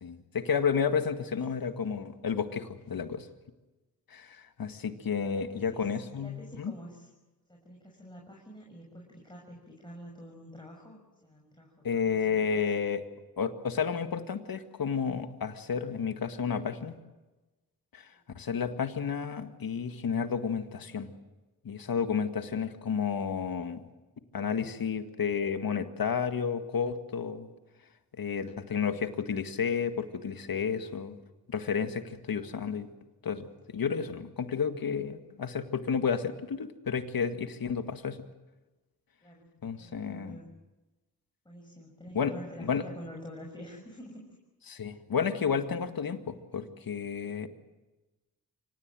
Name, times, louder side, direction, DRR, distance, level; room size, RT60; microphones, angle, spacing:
voice 1, 0.0-3.3 4.1-6.7 11.8-13.0 13.4-17.0 17.9-18.1 18.4-21.1 21.6-23.8 24.3-27.5 28.2-31.2 31.5-32.9 33.2-38.2 39.6-40.4 42.1-42.3 42.6-42.8 44.7-47.5, left 6 dB, 60° left, 8 dB, 2.0 m, -31 dB
voice 2, 5.2-7.1 7.5-12.8 18.1-18.2 39.2-40.5 41.4-44.3, equal, 10° left, -1 dB, 6.4 m, -48 dB
25.0 x 19.0 x 7.7 m, 1.1 s
supercardioid pair, 45°, 39 cm